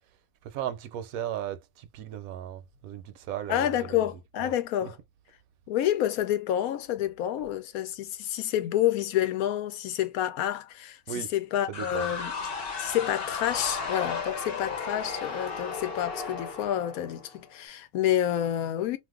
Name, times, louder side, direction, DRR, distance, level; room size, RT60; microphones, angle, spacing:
voice 1, 0.4-4.1 4.4-4.5 4.8-4.9 11.1-11.3 11.7-12.2, right 10 dB, 80° right, 1.0 m, -36 dB
voice 2, 3.5-5.0 5.7-12.3 12.8-19.0, left 11 dB, 85° left, 1.1 m, -28 dB
sound 1, 11.7-17.5, left 5 dB, 50° left, 0.9 m, -34 dB
2.5 x 2.3 x 3.6 m
omnidirectional pair, 1.5 m